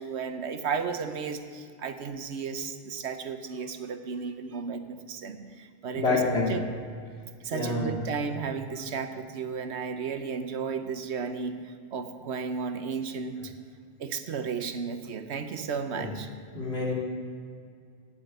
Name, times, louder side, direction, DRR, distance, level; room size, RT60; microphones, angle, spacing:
voice 1, 0.0-6.2 6.5-6.6 7.4-13.5 14.0-16.3, right 5 dB, 85° right, 9 dB, 1.2 m, -34 dB
voice 2, 5.9-6.5 7.5-7.9 15.9-16.1 16.5-16.9, left 3 dB, 75° left, -3 dB, 3.0 m, -27 dB
9.6 x 9.3 x 8.0 m, 2.2 s
omnidirectional pair, 1.1 m